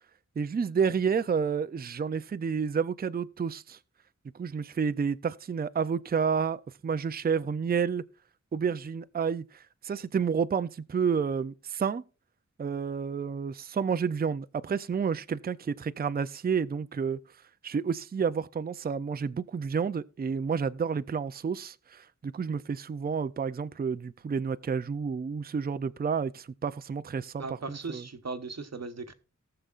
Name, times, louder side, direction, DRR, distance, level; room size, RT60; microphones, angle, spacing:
voice 1, 0.4-3.8 4.3-8.0 8.5-12.0 12.6-17.2 17.6-28.0, right 6 dB, 30° right, 0.4 m, -30 dB
voice 2, 27.4-29.1, right 4 dB, 60° right, 1.0 m, -38 dB
19.0 x 6.8 x 2.4 m
wide cardioid pair, 65°, 30 cm